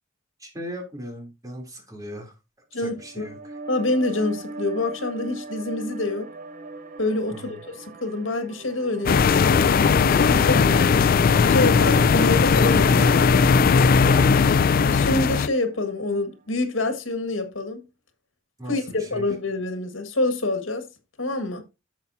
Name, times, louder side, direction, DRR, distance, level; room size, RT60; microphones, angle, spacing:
voice 1, 0.4-2.4 2.7-3.6 7.3-7.6 10.5-10.8 14.0-14.6 18.6-19.3, equal, 20° right, 3.1 m, -37 dB
voice 2, 2.7-3.3 3.7-6.3 7.0-10.9 11.4-13.3 14.8-17.8 18.7-20.8 21.2-21.6, left 2 dB, 80° left, 1.7 m, -26 dB
sound 1, 2.9-16.2, right 2 dB, 45° right, 0.7 m, -38 dB
sound 2, 9.1-15.5, left 5 dB, 50° left, 0.4 m, -18 dB
11.0 x 7.1 x 2.7 m
head